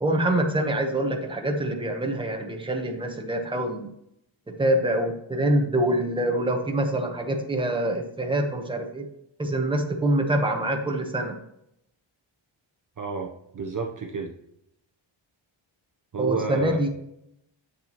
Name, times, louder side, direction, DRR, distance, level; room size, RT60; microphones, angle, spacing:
voice 1, 0.0-3.9 4.5-9.0 9.4-11.4 16.2-16.9, right 1 dB, 10° right, 2 dB, 1.0 m, -25 dB
voice 2, 13.0-14.3 16.1-16.8, right 4 dB, 40° right, 2 dB, 0.8 m, -31 dB
8.1 x 6.6 x 3.0 m, 0.77 s
wide cardioid pair, 140°, 49 cm